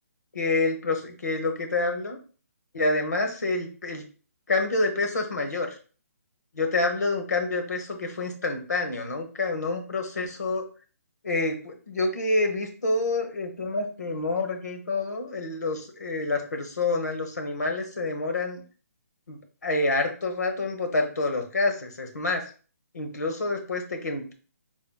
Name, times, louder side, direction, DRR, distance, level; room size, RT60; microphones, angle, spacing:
voice 1, 0.3-2.2 2.7-4.0 4.5-5.7 6.5-10.6 11.2-18.6 19.3-22.4 22.9-24.3, left 2 dB, 90° left, 4 dB, 1.0 m, -27 dB
4.0 x 3.3 x 2.2 m, 0.40 s
hypercardioid pair, 155°, 9 cm